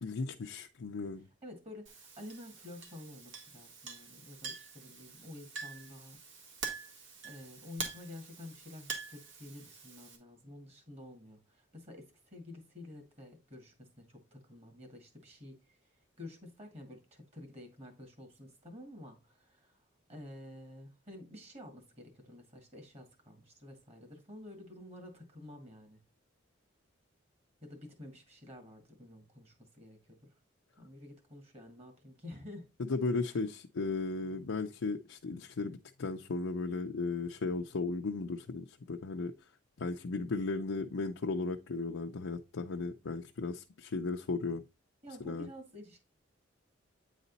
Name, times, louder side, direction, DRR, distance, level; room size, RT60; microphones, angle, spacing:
voice 1, 0.0-1.3 32.8-39.3 39.8-44.6 45.2-45.5, left 3 dB, 85° left, 0.5 m, -35 dB
voice 2, 1.4-6.2 7.2-15.8 16.2-19.8 20.1-26.0 27.6-30.3 30.8-32.7 33.2-33.3 45.0-46.0, left 1 dB, 30° right, 2.0 m, -50 dB
Chink clink, 1.9-10.2, right 5 dB, 70° right, 1.9 m, -45 dB
8.9 x 4.1 x 4.0 m
head